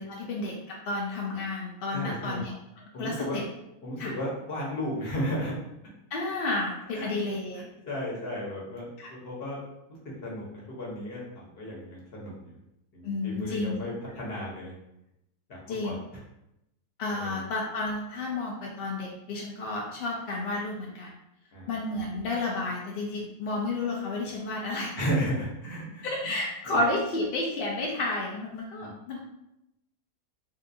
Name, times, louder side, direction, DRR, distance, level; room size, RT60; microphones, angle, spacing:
voice 1, 0.0-2.5 3.0-3.4 4.0-4.1 6.1-7.7 9.0-9.1 13.0-13.8 15.7-16.0 17.0-21.2 21.7-25.0 26.0-29.2, left 2 dB, 65° left, -2 dB, 0.5 m, -31 dB
voice 2, 1.9-2.4 2.9-3.3 3.8-5.5 6.9-7.1 7.5-9.6 9.9-12.5 12.9-14.7 15.5-15.9 17.1-17.4 21.5-21.7 25.0-26.1 26.7-26.8 28.8-28.9, equal, 45° left, -4 dB, 1.1 m, -34 dB
3.7 x 2.5 x 2.6 m, 0.85 s
omnidirectional pair, 1.6 m